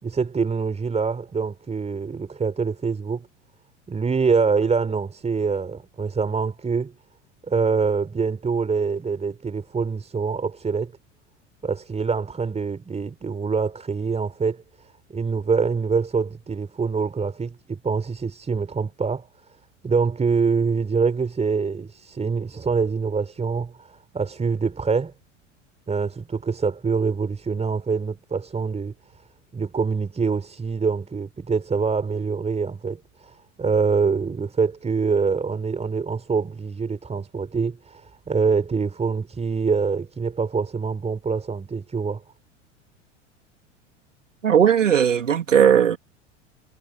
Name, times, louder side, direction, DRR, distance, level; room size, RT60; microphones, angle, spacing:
voice 1, 0.0-3.3 3.9-6.9 7.5-10.9 11.6-19.3 19.8-25.1 25.9-28.9 29.5-42.2, right 5 dB, 15° right, 5.1 m, -25 dB
voice 2, 44.4-46.0, right 8 dB, 80° right, 3.4 m, -17 dB
figure-of-eight pair, 85°, 37 cm